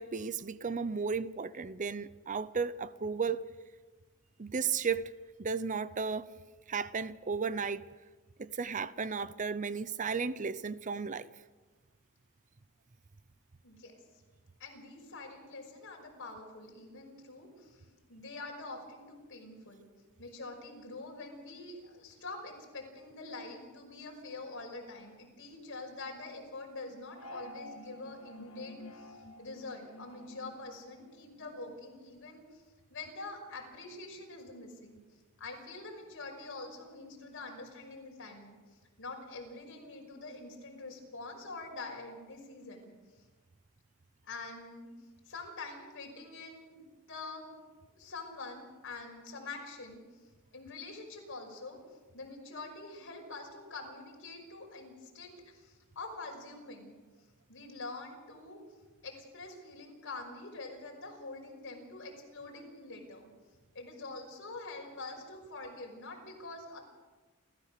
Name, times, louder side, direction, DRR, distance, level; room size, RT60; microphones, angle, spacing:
voice 1, 0.0-3.4 4.4-5.1 5.4-6.3 6.7-7.8 8.4-11.3, right 5 dB, 35° right, 0.6 m, -34 dB
voice 2, 14.6-19.9 20.2-32.6 32.9-35.0 35.4-38.6 39.0-42.9 44.2-44.9 45.3-47.6 47.9-50.0 50.5-51.8 52.1-57.0 57.5-58.6 59.0-63.3 63.7-66.8, left 3 dB, 60° left, 5.7 m, -45 dB
sound 1, 27.1-31.8, left 1 dB, 80° left, 1.5 m, -50 dB
29.5 x 14.5 x 6.7 m
head